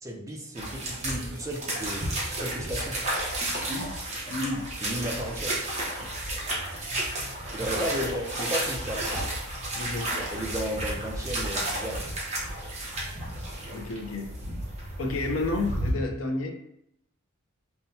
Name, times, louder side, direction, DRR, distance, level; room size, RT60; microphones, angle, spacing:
voice 1, 0.0-2.0 2.4-3.0 4.8-5.6 7.5-9.2 10.3-12.1, equal, 15° right, 0 dB, 0.5 m, -34 dB
Walking in shallow water to shore, 0.6-15.9, right 1 dB, 30° right, 0.9 m, -32 dB
voice 2, 3.6-4.7 6.0-6.1 9.7-10.1 13.7-14.3 15.0-16.5, left 2 dB, 65° left, 2 dB, 0.5 m, -31 dB
5.5 x 2.2 x 2.7 m, 0.79 s
head